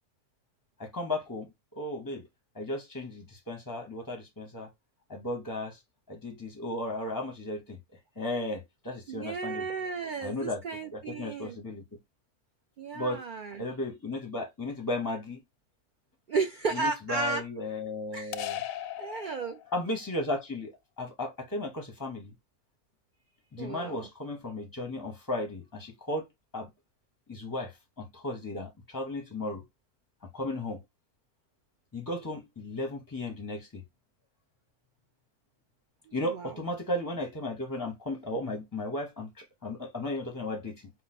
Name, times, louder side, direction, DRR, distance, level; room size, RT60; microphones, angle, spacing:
voice 1, 0.8-2.3 2.5-4.7 5.1-5.8 6.1-7.8 8.2-9.7 10.2-10.6 10.9-11.8 12.9-13.2 13.6-15.4 16.7-18.6 19.7-20.7 21.0-22.3 23.5-26.3 26.5-26.7 27.3-29.6 30.3-30.8 31.9-33.8 36.1-40.9, left 1 dB, 20° left, 0.7 m, -35 dB
voice 2, 9.1-11.6 12.8-13.6 16.3-17.4 18.1-18.5 19.0-19.6 23.6-24.1 36.1-36.6, right 4 dB, 60° right, 0.5 m, -34 dB
sound 1, 18.3-20.0, left 11 dB, 70° left, 0.9 m, -37 dB
5.3 x 2.2 x 4.1 m
omnidirectional pair, 1.6 m